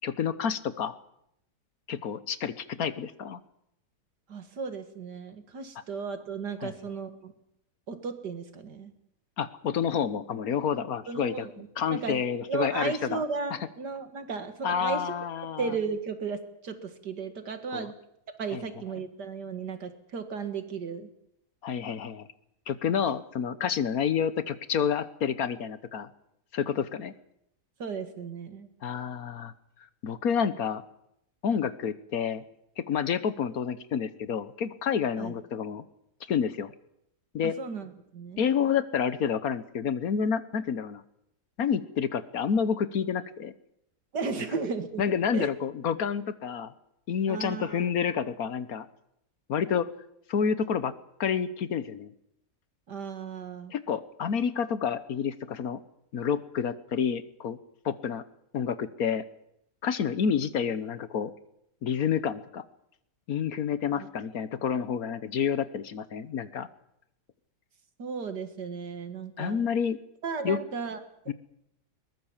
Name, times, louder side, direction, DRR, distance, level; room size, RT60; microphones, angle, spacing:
voice 1, 0.0-1.0 1.9-3.4 6.6-6.7 9.4-11.5 11.8-13.2 14.6-15.7 17.7-17.9 18.5-18.6 21.6-22.3 22.7-26.1 26.5-27.1 28.8-29.5 30.0-30.8 31.4-32.4 32.8-35.8 36.3-36.7 37.3-37.5 38.4-41.0 41.6-43.5 45.0-46.7 47.1-48.9 49.5-49.9 50.3-50.9 51.2-52.1 53.7-55.8 56.1-57.6 57.8-58.2 58.5-59.2 59.8-61.3 61.8-62.6 63.3-66.7 69.4-70.0 70.4-70.6 71.3-71.4, left 7 dB, 65° left, 14 dB, 1.4 m, -29 dB
voice 2, 4.3-7.3 7.9-8.9 11.1-12.2 12.5-15.1 15.6-17.9 18.4-21.1 27.8-28.7 35.2-35.3 37.4-38.4 44.1-45.0 45.3-45.5 47.3-47.8 52.9-53.7 63.9-64.1 68.0-69.7 70.2-71.0, right 5 dB, 80° right, 8 dB, 2.6 m, -35 dB
22.0 x 20.0 x 7.3 m, 0.79 s
omnidirectional pair, 1.8 m